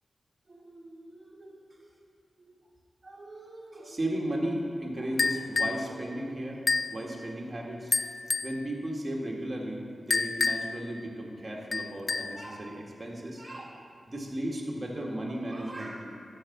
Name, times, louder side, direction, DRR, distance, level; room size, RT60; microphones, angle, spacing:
voice 1, 0.5-1.9 2.4-2.5 3.0-6.6 6.9-7.9 8.4-16.2, right 1 dB, 35° right, -2 dB, 1.9 m, -36 dB
sound 1, 5.2-5.9 6.7-7.0 7.9-8.6 10.1-10.8 11.7-12.4, left 4 dB, 55° left, 0.3 m, -28 dB
12.0 x 5.0 x 7.2 m, 2.6 s
wide cardioid pair, 75°, 0 cm